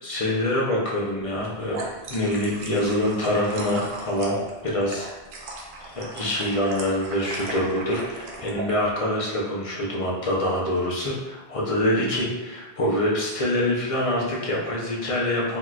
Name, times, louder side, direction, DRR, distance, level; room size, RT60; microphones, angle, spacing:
voice 1, 0.0-1.8 2.1-4.4 4.6-5.1 5.8-15.6, left 1 dB, 40° left, -3 dB, 0.6 m, -25 dB
sound 1, 1.3-8.8, right 2 dB, 60° right, 0.7 m, -37 dB
3.5 x 2.8 x 2.3 m, 1.1 s
omnidirectional pair, 1.1 m